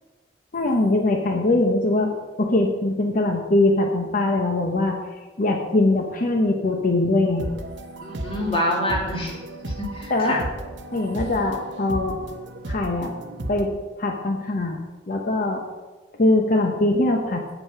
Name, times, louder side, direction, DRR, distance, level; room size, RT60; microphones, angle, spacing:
voice 1, 0.5-2.1 2.4-5.0 5.4-7.4 10.1-10.4 10.9-12.2 12.7-13.1 13.5-14.8 15.1-15.6 16.2-17.4, left 2 dB, 50° left, 3 dB, 0.9 m, -22 dB
sound 1, 7.4-13.6, right 1 dB, 80° right, 0.9 m, -34 dB
voice 2, 8.0-10.4, left 1 dB, 30° left, -2 dB, 2.3 m, -27 dB
8.4 x 8.3 x 5.6 m, 1.3 s
head